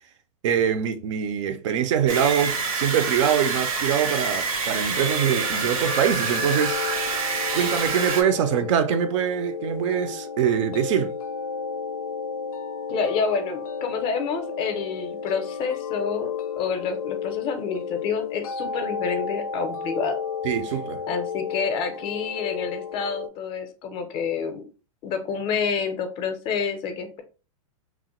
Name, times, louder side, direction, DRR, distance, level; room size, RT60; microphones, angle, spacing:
voice 1, 0.4-6.8 7.5-11.1 20.4-21.0, right 8 dB, 60° right, 0.4 m, -24 dB
sound 1, 2.1-8.2, right 4 dB, 80° right, 0.8 m, -27 dB
sound 2, 4.9-23.3, left 6 dB, 90° left, 0.4 m, -33 dB
voice 2, 12.9-16.3 16.6-20.2 21.1-24.6 25.0-27.2, left 5 dB, 30° left, 0.5 m, -28 dB
2.9 x 2.1 x 2.9 m
hypercardioid pair, 140°, 18 cm